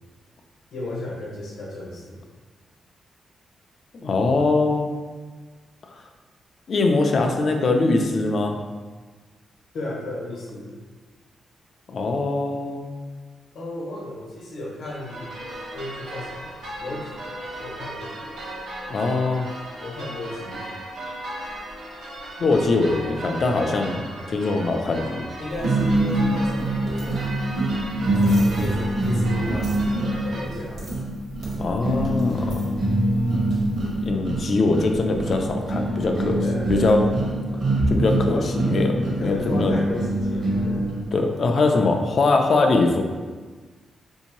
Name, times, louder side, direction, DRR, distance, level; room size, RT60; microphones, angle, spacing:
voice 1, 0.7-2.2 9.7-10.7 13.5-15.3 15.7-18.3 19.8-20.6 25.4-27.6 28.2-31.1 36.4-37.0 38.3-38.5 39.2-40.9, left 1 dB, 70° left, -3 dB, 0.9 m, -34 dB
voice 2, 3.9-4.9 6.7-8.6 11.9-12.8 18.9-19.5 22.4-25.3 31.6-32.8 34.0-36.4 36.7-37.1 37.9-38.4 38.7-39.7 41.1-43.0, left 3 dB, 50° left, 4 dB, 0.4 m, -22 dB
sound 1, 14.8-30.4, right 1 dB, 85° right, 0.7 m, -36 dB
sound 2, 25.6-41.1, right 1 dB, 55° right, 0.9 m, -24 dB
3.5 x 2.7 x 2.9 m, 1.4 s
wide cardioid pair, 125°, 0 cm